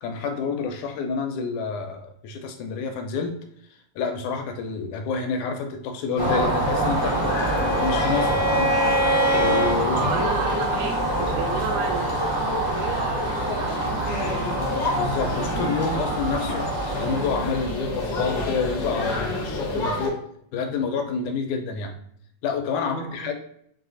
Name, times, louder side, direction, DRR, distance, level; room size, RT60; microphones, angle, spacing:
voice 1, 0.0-3.4 4.0-7.2 7.6-8.7 9.3-10.2 15.0-16.7 17.0-20.2 20.5-21.9 22.4-23.3, left 5 dB, 80° left, 4 dB, 2.0 m, -28 dB
sound 1, 6.2-20.1, left 1 dB, 60° left, 1.0 m, -29 dB
sound 2, 6.2-17.7, right 1 dB, 20° right, 0.5 m, -27 dB
Bowed string instrument, 6.6-9.8, right 1 dB, 40° left, 0.6 m, -25 dB
voice 2, 9.9-14.6 22.8-23.3, right 4 dB, 85° right, 2 dB, 2.3 m, -33 dB
5.4 x 2.4 x 3.8 m, 0.68 s
omnidirectional pair, 3.4 m